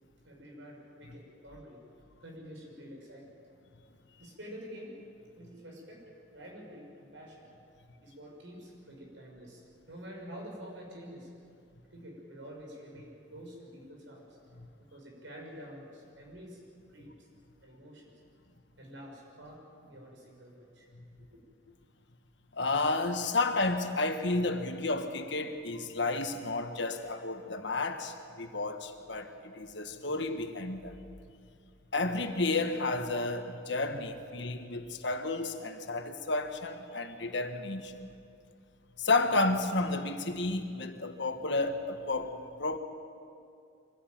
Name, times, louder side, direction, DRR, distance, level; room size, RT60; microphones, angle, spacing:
voice 1, 0.2-1.8 2.2-3.3 4.2-5.0 5.3-6.0 6.3-7.5 8.0-11.3 11.9-14.2 14.9-16.6 16.9-17.3 17.6-18.1 18.8-20.9 21.2-21.3, equal, 70° right, 6.4 m, -48 dB
voice 2, 22.5-30.9 31.9-38.1 39.0-42.8, left 2 dB, 60° left, 1.6 m, -31 dB
24.0 x 16.5 x 9.3 m
head